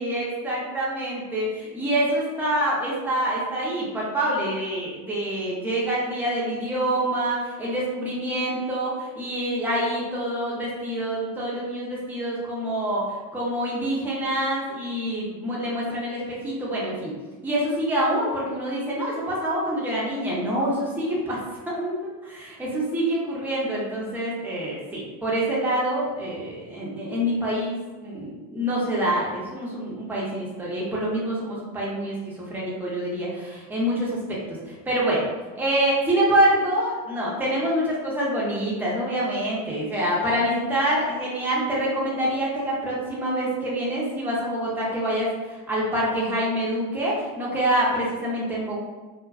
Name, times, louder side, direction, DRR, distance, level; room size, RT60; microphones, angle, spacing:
voice 1, 0.0-13.1 13.3-17.1 17.4-21.4 21.7-27.8 28.0-35.2 35.6-45.3 45.7-48.8, right 1 dB, 5° right, -5 dB, 0.5 m, -26 dB
2.5 x 2.3 x 2.3 m, 1.3 s
supercardioid pair, 100°, 49 cm